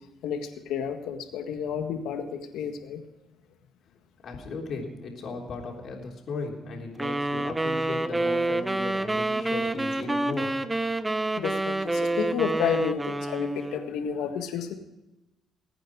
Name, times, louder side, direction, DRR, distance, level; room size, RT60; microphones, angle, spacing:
voice 1, 0.2-3.0 11.4-14.7, left 7 dB, 90° left, 6 dB, 1.7 m, -31 dB
voice 2, 4.2-10.7, left 3 dB, 60° left, 0 dB, 3.6 m, -36 dB
sound 1, 7.0-13.9, right 2 dB, 15° right, 0.8 m, -28 dB
21.0 x 9.1 x 4.7 m, 0.97 s
cardioid pair, 90°, 0 cm